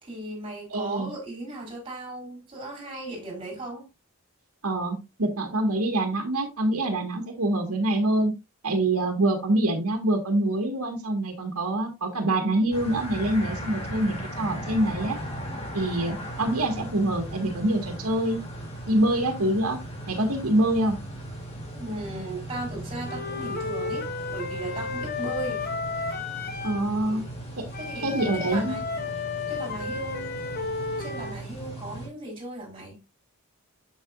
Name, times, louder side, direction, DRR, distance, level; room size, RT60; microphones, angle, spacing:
voice 1, 0.0-3.9 21.7-25.7 26.8-27.3 27.8-28.1 28.5-28.8 29.5-30.5 31.0-33.0, right 2 dB, 25° right, 4.8 m, -37 dB
voice 2, 0.7-1.1 4.6-8.3 8.6-15.2 15.7-18.4 18.9-19.8 20.1-21.0 26.6-27.2 27.6-27.7 28.0-28.8, right 1 dB, 85° right, 1.9 m, -25 dB
sound 1, 12.7-32.1, right 1 dB, 30° left, 2.9 m, -38 dB
Wind instrument woodwind instrument, 23.1-26.9 27.7-31.4, left 4 dB, 45° left, 1.4 m, -33 dB
8.1 x 7.9 x 2.6 m
head